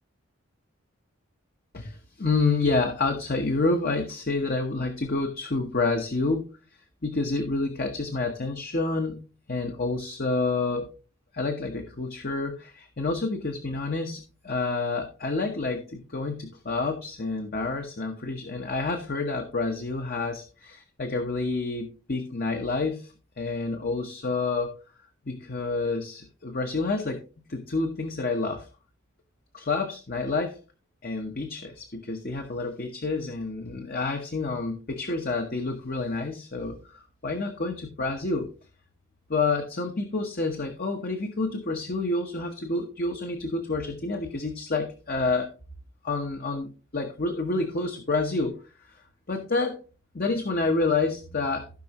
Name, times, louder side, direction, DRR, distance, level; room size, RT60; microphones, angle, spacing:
voice 1, 1.7-6.5 7.0-9.2 9.5-10.9 11.3-24.8 25.3-28.7 29.5-30.6 31.0-38.5 39.3-45.6 46.0-48.6 48.9-49.8 50.1-51.7, left 3 dB, 45° left, 4 dB, 1.0 m, -28 dB
16.0 x 5.4 x 3.0 m, 0.34 s
head